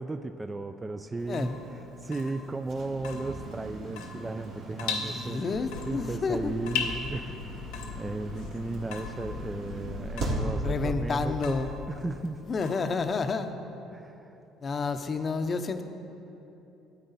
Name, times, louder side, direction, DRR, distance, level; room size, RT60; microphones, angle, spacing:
voice 1, 0.0-5.4 5.9-11.6 11.9-12.4 13.9-14.4, right 2 dB, 20° right, 8 dB, 0.4 m, -35 dB
sound 1, 1.0-12.0, right 1 dB, 75° right, 2.2 m, -39 dB
Water tap faucet / Drip, 1.2-13.4, left 6 dB, 85° left, 1.0 m, -40 dB
voice 2, 5.0-6.5 10.6-11.7 12.5-13.5 14.6-15.8, left 4 dB, 35° left, 8 dB, 0.7 m, -30 dB
sound 2, 5.5-11.9, left 8 dB, 70° left, 0.3 m, -43 dB
13.0 x 8.9 x 4.1 m, 3.0 s
supercardioid pair, 90°, 0 cm